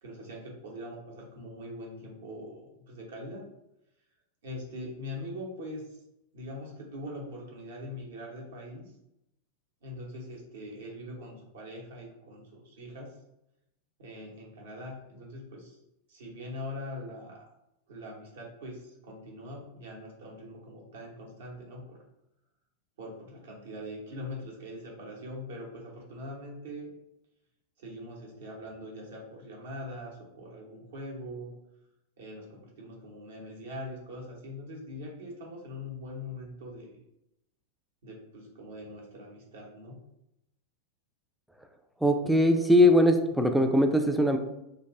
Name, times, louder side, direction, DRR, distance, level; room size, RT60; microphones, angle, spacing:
voice 1, 0.0-3.4 4.4-6.0 6.3-8.8 9.8-13.1 14.0-15.8 16.1-17.5 17.9-22.0 23.0-26.9 27.8-31.5 32.2-36.9 38.0-40.0, left 1 dB, 60° right, -2 dB, 0.9 m, -42 dB
voice 2, 42.0-44.4, left 1 dB, ahead, 5 dB, 0.3 m, -21 dB
2.8 x 2.5 x 3.5 m, 0.86 s
figure-of-eight pair, 90°, 0 cm